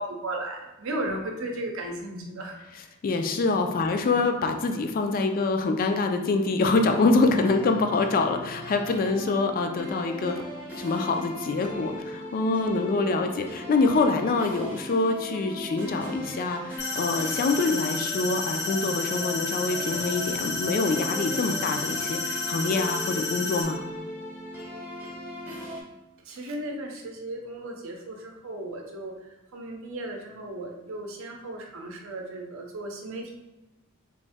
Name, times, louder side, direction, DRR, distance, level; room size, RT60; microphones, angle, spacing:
voice 1, 0.0-2.6 26.2-29.1 29.5-33.3, right 1 dB, 70° right, 2 dB, 0.6 m, -35 dB
voice 2, 3.0-10.4 10.8-23.8, left 3 dB, 45° left, 6 dB, 0.3 m, -25 dB
sound 1, 6.9-25.8, equal, 10° right, 0.6 m, -39 dB
sound 2, 16.8-23.6, left 3 dB, 60° left, 0.8 m, -31 dB
3.0 x 2.6 x 3.5 m, 1.0 s
head